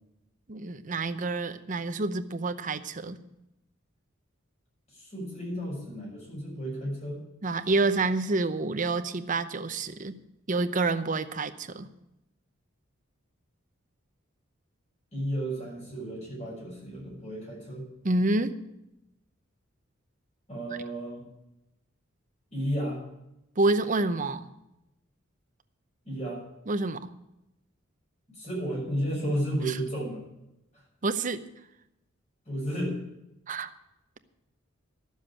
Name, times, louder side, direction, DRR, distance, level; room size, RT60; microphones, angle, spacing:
voice 1, 0.5-3.2 7.4-10.2 10.5-11.9 18.0-18.6 20.7-20.8 23.6-24.5 26.7-27.1 29.7-29.8 31.0-31.5 33.5-33.7, right 2 dB, 40° right, 10 dB, 0.7 m, -28 dB
voice 2, 4.9-7.2 15.1-17.9 20.5-21.2 22.5-23.0 26.0-26.4 28.3-30.2 32.5-33.0, equal, 35° left, -3 dB, 6.2 m, -33 dB
12.5 x 7.4 x 8.6 m, 0.88 s
head